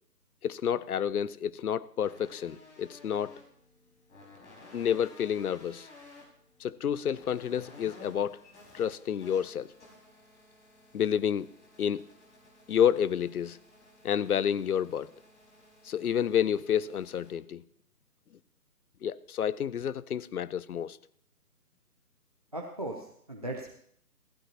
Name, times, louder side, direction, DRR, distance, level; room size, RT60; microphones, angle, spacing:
voice 1, 0.4-3.4 4.7-5.9 6.6-8.4 8.7-9.7 10.9-11.5 11.8-12.1 12.7-13.6 14.0-15.1 15.8-17.6 19.0-21.0, left 8 dB, 65° left, 19 dB, 0.6 m, -29 dB
sound 1, 2.0-17.3, left 2 dB, 45° left, 5.3 m, -55 dB
voice 2, 22.5-23.7, right 1 dB, 25° right, -1 dB, 0.7 m, -37 dB
15.5 x 15.0 x 2.9 m, 0.66 s
hypercardioid pair, 165°, 49 cm